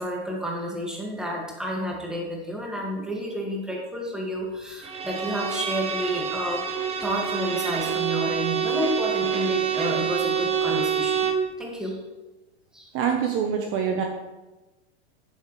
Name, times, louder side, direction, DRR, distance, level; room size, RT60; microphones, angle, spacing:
voice 1, 0.0-6.7 7.0-11.3 11.6-12.0 12.7-12.9 13.2-13.4, equal, ahead, -2 dB, 2.1 m, -30 dB
Bowed string instrument, 4.8-11.5, right 7 dB, 20° right, 0.8 m, -27 dB
voice 2, 12.9-14.0, right 7 dB, 40° right, 3 dB, 1.1 m, -25 dB
11.0 x 7.0 x 3.3 m, 1.1 s
hypercardioid pair, 120°, 33 cm